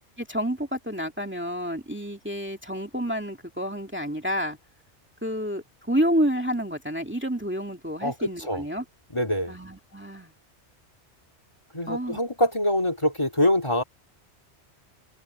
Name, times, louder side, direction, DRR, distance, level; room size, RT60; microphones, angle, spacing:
voice 1, 0.2-4.6 5.2-8.8 9.5-10.3 11.9-12.2, equal, 10° right, 2.4 m, -29 dB
voice 2, 8.0-8.6 9.1-9.5 11.7-13.8, left 1 dB, 25° left, 2.3 m, -24 dB
omnidirectional pair, 1.2 m